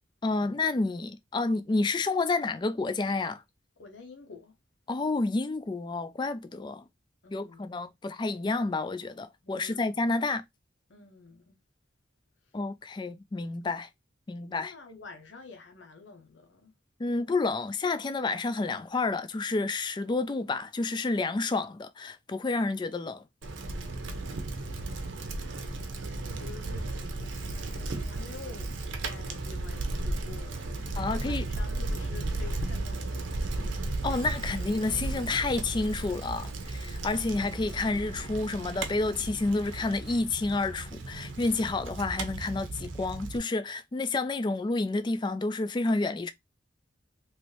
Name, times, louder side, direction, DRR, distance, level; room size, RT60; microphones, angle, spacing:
voice 1, 0.2-3.4 4.9-6.8 7.3-10.4 12.5-13.9 14.3-14.7 17.0-23.2 31.0-31.4 34.0-46.3, left 3 dB, 25° left, 0.3 m, -29 dB
voice 2, 3.8-4.5 7.2-7.7 9.4-10.2 10.9-11.6 12.4-12.5 14.5-16.7 24.5-25.5 26.2-33.8, left 4 dB, 70° left, 0.7 m, -49 dB
Bicycle, 23.4-43.4, right 2 dB, 90° right, 0.7 m, -35 dB
3.0 x 2.6 x 3.1 m
head